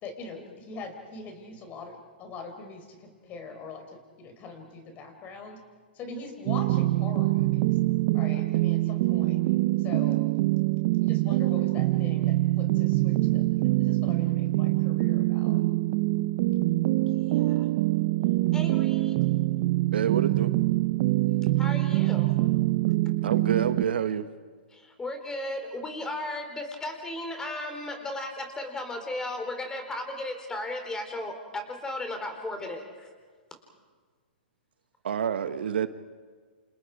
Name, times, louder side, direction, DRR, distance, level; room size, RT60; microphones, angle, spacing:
voice 1, 0.0-5.6 5.9-7.8 8.1-9.4 9.8-10.2 11.0-15.6, left 3 dB, 30° left, 6 dB, 4.5 m, -42 dB
sound 1, 6.5-23.8, right 18 dB, 50° right, 0.7 m, -24 dB
voice 2, 17.1-17.7 18.5-19.2 21.4-22.3 24.7-33.1, left 1 dB, 10° left, 5 dB, 4.2 m, -35 dB
voice 3, 19.9-20.5 23.2-24.3 35.0-35.9, right 8 dB, 75° right, 11 dB, 1.2 m, -27 dB
29.0 x 28.5 x 5.0 m, 1.5 s
hypercardioid pair, 130°, 6 cm